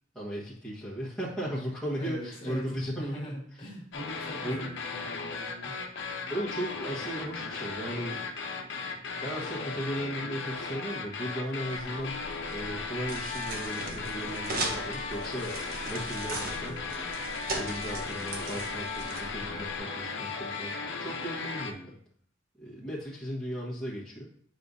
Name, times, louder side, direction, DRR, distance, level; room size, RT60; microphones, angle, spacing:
voice 1, 0.1-3.2 4.4-4.7 6.3-8.3 8.6-15.5 15.9-17.1 17.5-22.0 22.6-24.3, equal, 5° left, -7 dB, 1.3 m, -36 dB
voice 2, 2.0-5.7, equal, 30° left, -3 dB, 1.5 m, -39 dB
sound 1, 3.9-21.7, left 4 dB, 65° left, 0.8 m, -36 dB
sound 2, 11.7-19.8, right 2 dB, 50° right, 1.1 m, -39 dB
7.6 x 5.0 x 2.7 m, 0.62 s
head